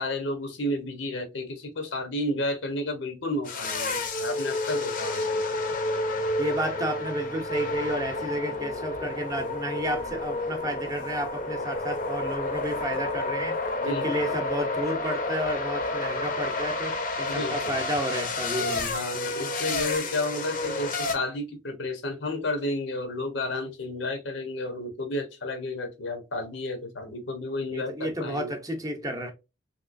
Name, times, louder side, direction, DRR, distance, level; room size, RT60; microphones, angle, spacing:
voice 1, 0.0-5.4 13.8-14.3 17.3-17.8 18.6-28.5, left 1 dB, 85° left, 0.9 m, -32 dB
sound 1, 3.4-21.1, left 2 dB, 50° left, 0.6 m, -30 dB
voice 2, 6.4-13.6 13.8-18.9 27.7-29.3, equal, 20° right, 0.6 m, -32 dB
3.2 x 2.9 x 2.5 m
head